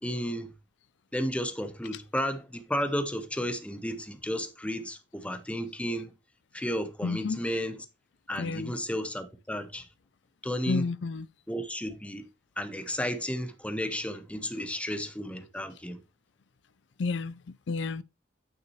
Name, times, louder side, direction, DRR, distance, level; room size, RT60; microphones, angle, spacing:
voice 1, 0.0-0.5 1.1-6.1 6.5-7.9 8.3-9.9 10.4-10.8 11.5-12.3 12.6-16.0, equal, 5° left, 0.9 m, -33 dB
voice 2, 7.0-7.4 8.4-8.7 10.7-11.3 17.0-18.0, left 4 dB, 75° left, 0.5 m, -31 dB
9.3 x 5.8 x 3.1 m
head